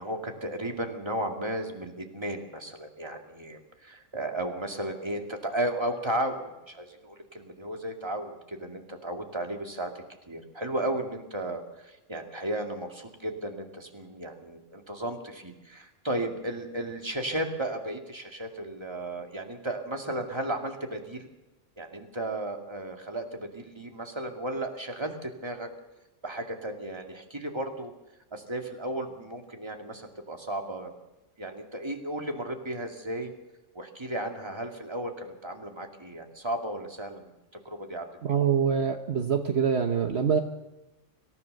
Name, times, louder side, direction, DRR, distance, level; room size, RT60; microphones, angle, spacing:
voice 1, 0.0-9.9 10.3-21.3 21.8-25.7 26.2-27.9 28.3-30.9 31.4-33.3 33.7-38.1, right 1 dB, 20° right, 3 dB, 2.4 m, -34 dB
voice 2, 38.2-40.4, right 7 dB, 60° right, 5 dB, 1.4 m, -25 dB
26.0 x 15.0 x 6.7 m, 1.0 s
omnidirectional pair, 1.3 m